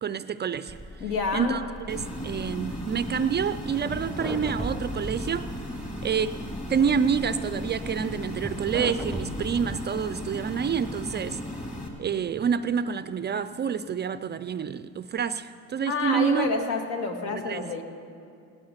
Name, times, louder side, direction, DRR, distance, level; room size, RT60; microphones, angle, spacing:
voice 1, 0.0-1.0 1.3-5.5 6.0-6.4 6.7-11.4 12.0-16.5 17.3-17.7, right 7 dB, 30° right, 13 dB, 0.4 m, -28 dB
sound 1, 0.7-9.9, right 1 dB, ahead, 0.8 m, -39 dB
voice 2, 1.0-1.6 15.9-17.8, left 4 dB, 75° left, 4 dB, 1.9 m, -28 dB
sound 2, 1.9-11.9, left 1 dB, 20° left, 2.4 m, -36 dB
17.5 x 11.5 x 5.7 m, 2.4 s
cardioid pair, 100°, 37 cm